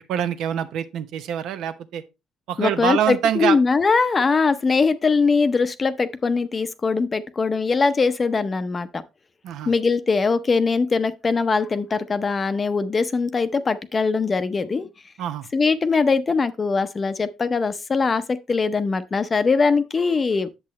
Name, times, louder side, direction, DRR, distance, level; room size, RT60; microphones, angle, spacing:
voice 1, 0.0-2.0 2.5-3.6 9.4-9.7 15.2-15.5, right 10 dB, 80° right, 0.9 m, -25 dB
voice 2, 2.6-9.0 9.7-14.9 15.5-20.5, left 4 dB, 25° left, 0.6 m, -21 dB
8.5 x 7.3 x 3.1 m
cardioid pair, 130°, 0 cm